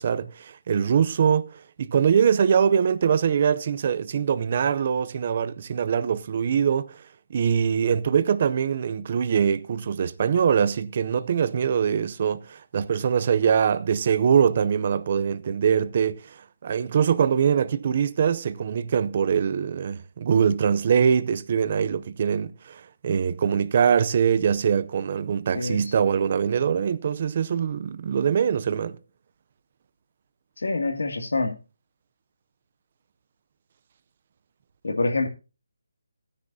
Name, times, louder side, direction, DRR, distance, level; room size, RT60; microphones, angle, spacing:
voice 1, 0.0-6.9 7.3-16.2 16.6-29.0, right 7 dB, 30° right, 0.5 m, -23 dB
voice 2, 25.5-25.9 30.6-31.6 34.8-35.3, left 3 dB, 85° left, 2.3 m, -26 dB
17.0 x 9.8 x 2.7 m
hypercardioid pair, 175°, 0 cm